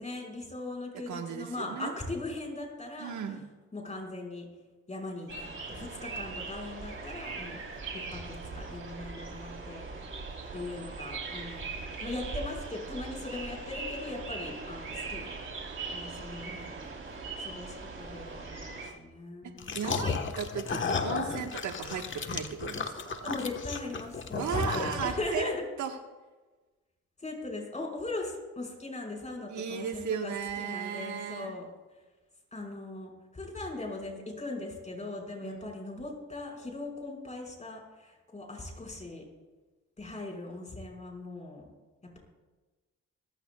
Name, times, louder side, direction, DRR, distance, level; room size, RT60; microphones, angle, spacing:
voice 1, 0.0-3.2 3.7-4.4 4.9-7.6 8.1-9.9 10.5-11.8 12.0-15.3 15.9-16.9 17.4-19.7 21.2-21.5 23.2-25.6 27.2-31.7 32.5-39.3 40.0-41.7, left 2 dB, 25° left, 0 dB, 5.3 m, -39 dB
voice 2, 1.1-2.0 3.0-3.5 19.4-23.3 24.3-25.5 25.8-25.9 29.5-31.5 35.4-35.8, right 7 dB, 70° right, 4 dB, 1.5 m, -36 dB
sound 1, 5.3-18.9, right 4 dB, 40° right, 3.7 m, -40 dB
sound 2, 19.6-25.3, left 5 dB, 40° left, 1.4 m, -34 dB
25.0 x 15.0 x 2.4 m, 1.2 s
cardioid pair, 90°, 30 cm